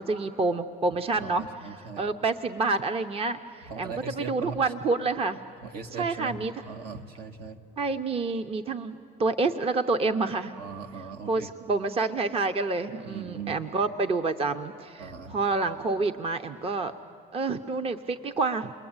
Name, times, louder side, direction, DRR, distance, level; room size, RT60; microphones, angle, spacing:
voice 1, 0.0-5.4 5.9-6.5 7.8-10.5 11.3-16.9 17.3-18.7, right 3 dB, 35° right, 8 dB, 0.9 m, -28 dB
voice 2, 1.2-2.1 3.7-4.6 5.6-7.6 10.5-11.5 13.0-13.6 15.0-15.4, right 5 dB, 70° right, 6 dB, 1.5 m, -39 dB
29.0 x 21.5 x 8.9 m, 2.5 s
cardioid pair, 110°, 17 cm